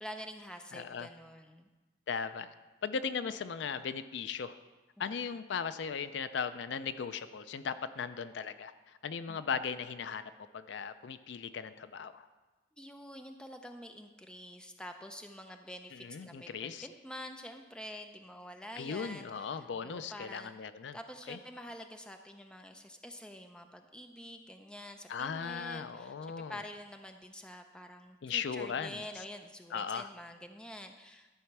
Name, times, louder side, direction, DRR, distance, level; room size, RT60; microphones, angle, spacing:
voice 1, 0.0-1.7 5.0-5.1 9.3-9.4 12.8-31.3, equal, 5° left, 5 dB, 0.4 m, -47 dB
voice 2, 0.7-1.1 2.1-2.5 2.8-4.5 5.0-12.3 15.9-16.9 18.8-21.0 21.3-21.4 25.1-26.6 28.2-29.0 29.7-30.1, left 6 dB, 75° left, 13 dB, 0.4 m, -38 dB
11.5 x 4.3 x 5.9 m, 1.2 s
head